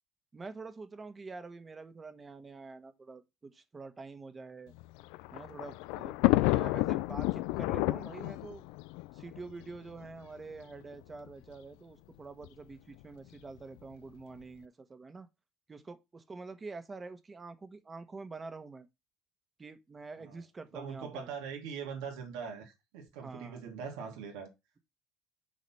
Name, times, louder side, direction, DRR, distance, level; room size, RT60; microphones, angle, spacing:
voice 1, 0.3-4.7 5.3-6.1 6.4-8.6 9.1-15.3 15.7-18.9 19.6-21.3 23.2-23.6, right 3 dB, 25° right, 1.4 m, -46 dB
Thunder, 4.8-10.1 10.9-11.0 11.3-11.4 12.4-12.7, left 20 dB, 85° left, 0.3 m, -31 dB
voice 2, 20.7-24.5, right 6 dB, 85° right, 2.7 m, -42 dB
6.5 x 4.9 x 5.7 m
supercardioid pair, 100°, 0 cm